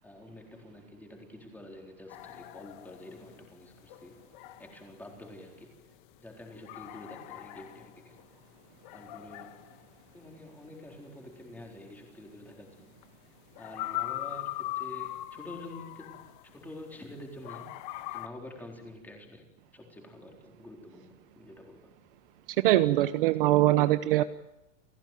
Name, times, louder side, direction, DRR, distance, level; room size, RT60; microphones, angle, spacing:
voice 1, 0.0-4.2 4.6-5.7 6.2-8.2 8.9-9.6 10.1-12.9 13.6-17.7 18.1-19.4 19.7-21.9, left 1 dB, 5° left, 1 dB, 4.0 m, -48 dB
sound 1, 2.1-17.0 17.4-18.3, left 16 dB, 35° left, 1.4 m, -41 dB
voice 2, 22.6-24.2, right 15 dB, 40° right, 12 dB, 0.9 m, -22 dB
29.0 x 17.5 x 9.2 m, 0.96 s
supercardioid pair, 175°, 40 cm